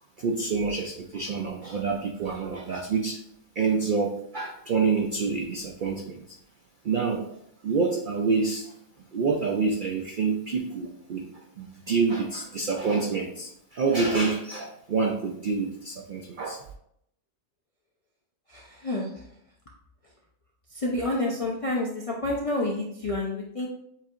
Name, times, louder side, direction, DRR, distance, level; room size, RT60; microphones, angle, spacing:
voice 1, 0.2-3.2 3.6-6.2 6.8-7.4 7.6-8.7 9.1-16.6, right 4 dB, 85° right, 2 dB, 0.4 m, -27 dB
voice 2, 18.5-19.1 20.7-23.7, left 2 dB, 50° left, -3 dB, 0.4 m, -29 dB
7.2 x 2.7 x 2.5 m, 0.73 s
omnidirectional pair, 1.4 m